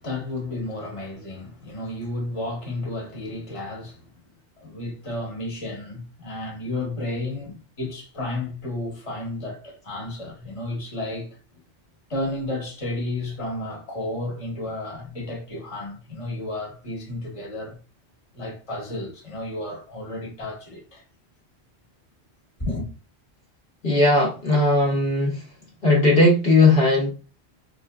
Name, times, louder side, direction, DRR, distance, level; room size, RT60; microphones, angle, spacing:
voice 1, 0.0-4.1 4.6-11.4 12.1-17.8 18.3-21.0 22.6-22.9, left 2 dB, 30° left, 1.2 m, -32 dB
voice 2, 23.8-25.4 25.8-27.1, left 2 dB, 60° left, 1.2 m, -18 dB
4.1 x 2.5 x 2.3 m
omnidirectional pair, 1.1 m